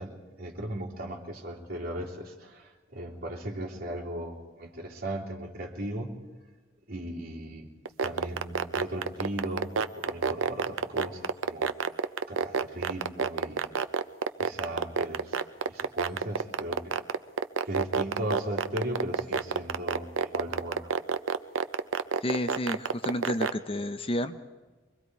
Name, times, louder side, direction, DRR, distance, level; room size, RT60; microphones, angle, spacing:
voice 1, 0.0-6.1 6.9-7.7 8.0-9.7 9.9-11.7 12.3-13.6 14.4-17.0 17.6-21.0, right 1 dB, 50° right, -3 dB, 3.3 m, -37 dB
sound 1, 7.8-23.5, right 5 dB, 85° right, 0.7 m, -27 dB
voice 2, 22.2-24.4, left 1 dB, 30° left, 9 dB, 0.7 m, -31 dB
24.5 x 22.5 x 4.7 m, 1.3 s
head